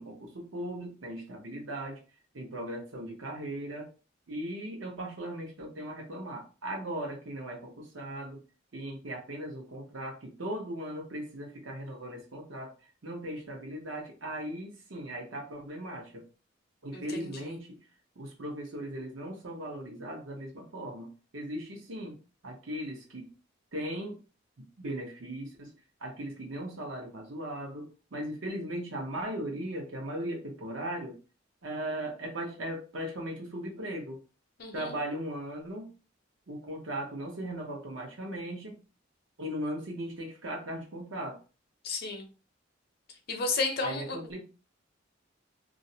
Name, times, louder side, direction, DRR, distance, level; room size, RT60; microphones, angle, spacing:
voice 1, 0.0-2.0 2.3-3.9 4.3-8.4 8.7-12.7 13.0-16.2 16.8-17.8 18.2-22.2 22.4-23.3 23.7-24.2 24.8-25.7 26.0-31.2 31.6-34.2 34.7-35.9 36.5-38.8 39.4-41.4 43.8-44.4, right 1 dB, 85° right, 1 dB, 0.8 m, -38 dB
voice 2, 16.9-17.6 34.6-34.9 41.8-42.2 43.3-44.2, left 3 dB, 55° left, 4 dB, 0.6 m, -33 dB
2.4 x 2.0 x 2.7 m, 0.33 s
head